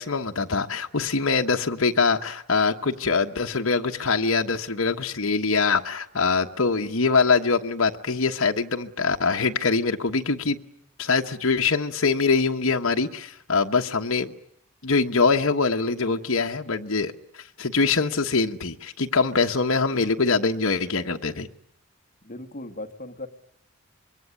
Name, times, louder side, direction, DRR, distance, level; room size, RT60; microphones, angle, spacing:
voice 1, 0.0-10.6 11.0-14.3 14.8-21.5, left 4 dB, 60° left, 3 dB, 1.2 m, -23 dB
voice 2, 22.2-23.3, left 2 dB, 35° left, 7 dB, 1.8 m, -37 dB
26.0 x 22.0 x 10.0 m, 0.71 s
head